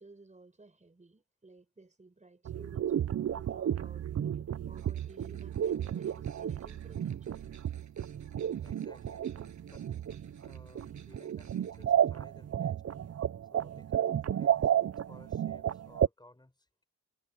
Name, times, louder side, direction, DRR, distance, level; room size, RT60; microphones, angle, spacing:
voice 1, 0.0-7.4, right 3 dB, 25° right, 6.2 m, -56 dB
sound 1, 2.5-16.1, right 10 dB, 60° right, 0.5 m, -32 dB
sound 2, 4.7-11.8, right 6 dB, 80° right, 6.6 m, -60 dB
voice 2, 8.6-9.9 10.4-12.8 13.5-16.7, left 1 dB, 15° left, 4.7 m, -58 dB
wide cardioid pair, 145°, 29 cm